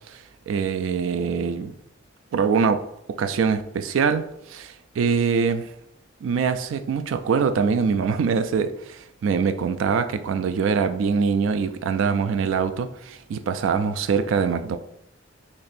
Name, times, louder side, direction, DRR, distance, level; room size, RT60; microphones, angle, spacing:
voice 1, 0.5-1.7 2.3-5.7 6.2-14.8, right 6 dB, 80° right, 0.3 m, -23 dB
4.2 x 3.0 x 2.5 m
head